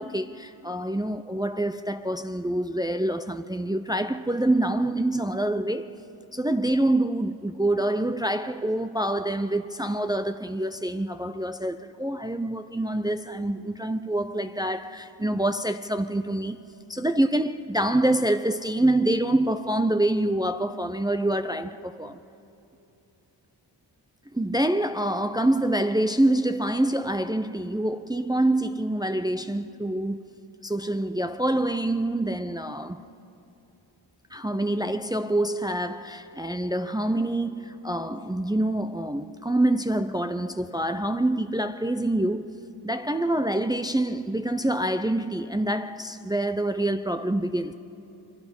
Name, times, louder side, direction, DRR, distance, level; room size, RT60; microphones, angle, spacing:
voice 1, 0.0-5.9 6.3-16.6 16.9-22.2 24.3-30.2 30.6-33.0 34.3-42.5 42.8-47.7, right 1 dB, 10° right, 0.6 m, -26 dB
27.5 x 23.0 x 5.4 m
cardioid pair, 70°, 49 cm